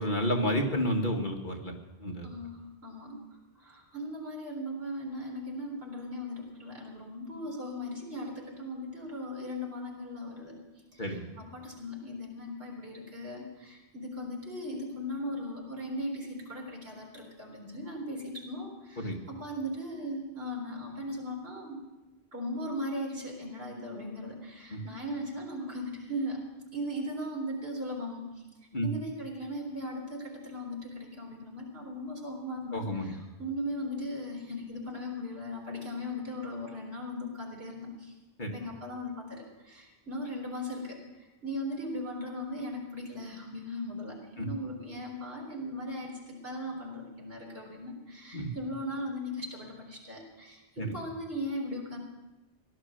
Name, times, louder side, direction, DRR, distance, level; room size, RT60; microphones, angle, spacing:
voice 1, 0.0-1.7 2.0-2.3 11.0-11.3 19.0-19.2 24.7-24.8 28.7-28.9 32.7-33.1 38.4-38.5 44.4-44.5 48.3-48.5 50.8-50.9, equal, 50° left, 1 dB, 1.9 m, -30 dB
voice 2, 2.2-3.2 3.6-10.6 10.9-21.8 22.3-26.4 26.7-28.2 28.8-38.1 38.5-52.0, left 1 dB, 70° right, -1 dB, 4.2 m, -38 dB
17.0 x 11.5 x 6.5 m, 1.1 s
omnidirectional pair, 1.0 m